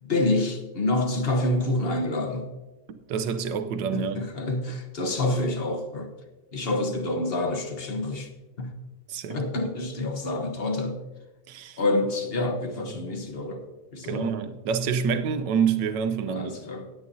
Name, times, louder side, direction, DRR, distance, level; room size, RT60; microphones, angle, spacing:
voice 1, 0.0-2.5 3.9-6.1 6.5-8.3 8.6-8.7 9.3-11.0 11.8-13.6 13.9-14.3 16.3-16.9, left 2 dB, 40° left, 6 dB, 1.1 m, -27 dB
voice 2, 2.9-4.2 9.1-9.4 11.5-11.8 14.0-16.5, right 6 dB, 70° right, 9 dB, 1.4 m, -27 dB
17.0 x 9.8 x 2.7 m, 1.2 s
omnidirectional pair, 2.1 m